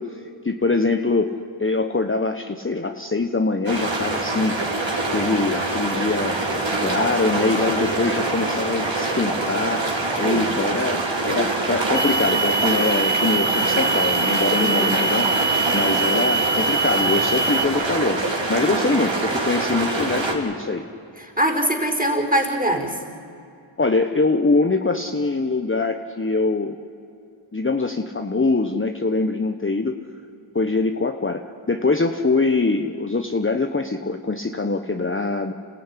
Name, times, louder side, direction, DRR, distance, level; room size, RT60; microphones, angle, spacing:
voice 1, 0.0-4.6 5.1-6.4 6.8-9.9 10.2-15.3 15.7-18.2 18.5-20.8 23.8-26.8 27.5-30.0 30.5-35.5, left 3 dB, 25° left, 6 dB, 1.1 m, -23 dB
sound 1, 3.7-20.3, right 2 dB, 60° right, 4.2 m, -24 dB
sound 2, 11.9-17.7, right 3 dB, 10° left, 1.6 m, -23 dB
voice 2, 14.6-14.9 21.4-22.9, right 1 dB, 15° right, 4 dB, 4.6 m, -22 dB
27.5 x 15.0 x 10.0 m, 2.6 s
cardioid pair, 40°, 49 cm